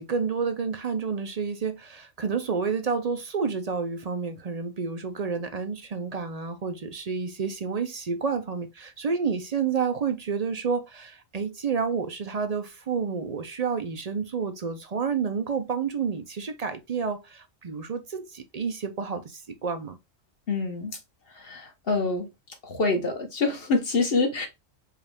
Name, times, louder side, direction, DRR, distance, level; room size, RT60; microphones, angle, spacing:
voice 1, 0.0-20.0, right 5 dB, 50° right, 0.5 m, -30 dB
voice 2, 20.5-21.0 21.3-22.3 22.6-24.5, left 3 dB, 55° left, 1.3 m, -26 dB
4.7 x 2.4 x 3.4 m
omnidirectional pair, 1.2 m